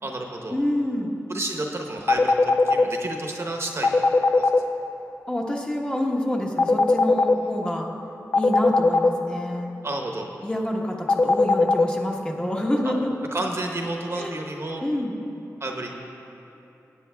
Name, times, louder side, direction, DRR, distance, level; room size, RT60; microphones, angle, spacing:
voice 1, 0.0-0.6 1.3-4.5 9.8-10.3 12.8-12.9 13.3-14.8 15.6-15.9, right 2 dB, 50° right, 1 dB, 0.9 m, -31 dB
voice 2, 0.5-1.1 5.3-7.9 8.3-9.7 10.4-13.1 14.1-14.4 14.8-15.2, left 1 dB, 15° left, -1 dB, 1.1 m, -27 dB
sound 1, 2.1-2.8 3.8-4.6 6.6-7.3 8.3-9.1 11.1-11.8, left 3 dB, 50° left, 0.5 m, -17 dB
17.5 x 8.6 x 2.3 m, 2.9 s
wide cardioid pair, 75°, 6 cm